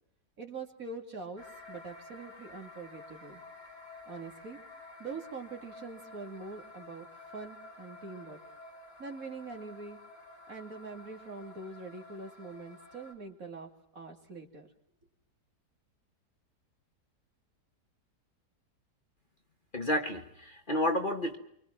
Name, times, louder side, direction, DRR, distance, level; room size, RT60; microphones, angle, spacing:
voice 1, 0.4-3.4 4.1-4.6 5.0-8.4 9.0-10.0 10.5-14.7, right 4 dB, 55° right, 4 dB, 3.1 m, -44 dB
sound 1, 1.4-13.1, left 3 dB, 15° left, 4.3 m, -51 dB
voice 2, 19.7-21.4, left 1 dB, 30° left, 4 dB, 1.8 m, -30 dB
25.5 x 24.5 x 6.0 m, 0.72 s
omnidirectional pair, 1.8 m